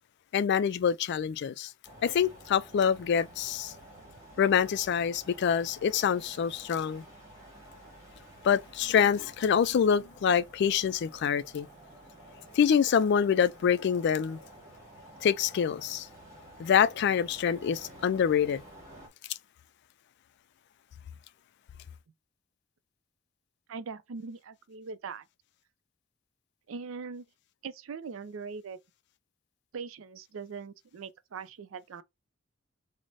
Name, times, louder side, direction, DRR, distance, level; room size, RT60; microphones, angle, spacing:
voice 1, 0.3-1.7 2.0-3.7 4.4-7.0 8.4-11.7 12.5-14.4 15.2-16.1 16.6-18.6, left 7 dB, 55° left, 0.3 m, -26 dB
sound 1, 1.8-19.1, right 1 dB, 15° right, 1.6 m, -51 dB
voice 2, 23.7-25.2 26.7-27.2 27.6-28.8 29.7-32.0, right 5 dB, 80° right, 0.4 m, -41 dB
3.1 x 2.1 x 3.8 m
head